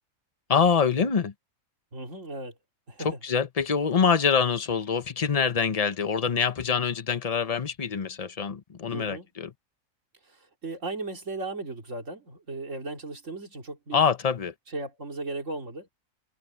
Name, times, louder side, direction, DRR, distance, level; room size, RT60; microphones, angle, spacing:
voice 1, 0.5-1.3 3.0-9.5 13.9-14.5, left 6 dB, 30° left, 0.9 m, -25 dB
voice 2, 1.9-2.5 2.9-3.1 8.9-9.3 10.6-14.0 14.7-15.9, right 2 dB, 60° right, 3.1 m, -36 dB
omnidirectional pair, 1.5 m